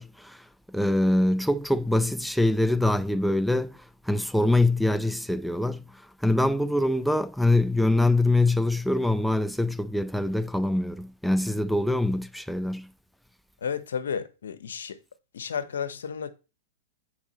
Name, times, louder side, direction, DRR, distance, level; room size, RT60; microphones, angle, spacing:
voice 1, 0.0-12.9, left 1 dB, ahead, 0.4 m, -24 dB
voice 2, 13.6-15.0 15.3-16.3, left 7 dB, 75° left, 1.0 m, -32 dB
7.1 x 4.8 x 4.3 m
hypercardioid pair, 110°, 0 cm